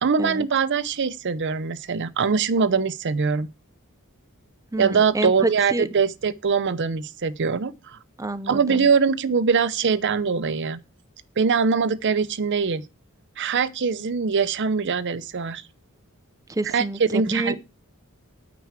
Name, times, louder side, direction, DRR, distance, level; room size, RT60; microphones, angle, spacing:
voice 1, 0.0-3.5 4.8-8.0 8.5-10.8 11.4-12.8 13.4-15.6 16.7-17.6, right 5 dB, 55° right, 0.6 m, -22 dB
voice 2, 4.7-5.9 8.2-8.9 16.5-17.6, right 2 dB, 15° right, 0.6 m, -28 dB
9.3 x 6.0 x 7.3 m
head